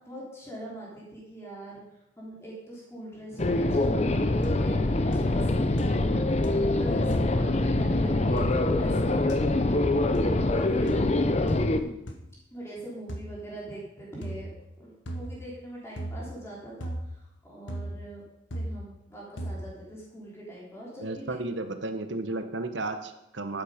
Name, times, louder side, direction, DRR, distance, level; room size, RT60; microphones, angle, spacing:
voice 1, 0.0-1.8 2.2-6.1 6.8-9.8 10.3-11.3 11.7-12.0 12.5-14.5 14.8-18.2 18.5-21.2, right 1 dB, 15° left, -5 dB, 3.6 m, -43 dB
sound 1, 3.4-11.8, left 2 dB, 35° left, 0.7 m, -24 dB
sound 2, 3.8-4.2 4.4-4.9 5.1-5.5 5.8-6.1 6.4-6.8 7.1-7.3 8.4-8.5 9.3-9.4 10.1-10.4 10.9-11.0 11.5-11.7 12.1-12.2 13.1-13.3 14.2-14.4 15.1-15.4 16.0-16.2 16.8-17.0 17.7-18.0 18.5-18.7 19.4-19.6, right 1 dB, 75° left, 1.6 m, -36 dB
voice 2, 21.0-23.6, right 2 dB, 70° right, 8 dB, 1.1 m, -33 dB
12.5 x 8.7 x 5.1 m, 0.91 s
head